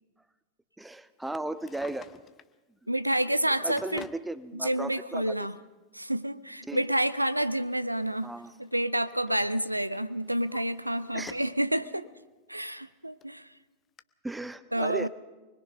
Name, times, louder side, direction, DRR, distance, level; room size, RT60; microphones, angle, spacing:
voice 1, 0.8-2.1 3.6-5.5 6.6-6.8 8.2-8.5 11.1-11.4 14.2-15.1, right 2 dB, 5° right, 14 dB, 0.8 m, -36 dB
Drawer open or close, 1.4-2.6 3.3-4.3 5.3-5.4 7.2-8.8 9.0-9.4 9.9-11.6 12.0-12.1 12.9-13.0 13.2-13.3 14.0-14.1, left 8 dB, 25° left, 0.8 m, -49 dB
voice 2, 2.9-4.1 4.6-5.5 5.9-8.3 8.6-12.0 12.5-13.5 14.7-15.1, right 1 dB, 85° right, 16 dB, 0.6 m, -29 dB
24.5 x 21.0 x 5.5 m, 1.2 s
figure-of-eight pair, 90°, 0 cm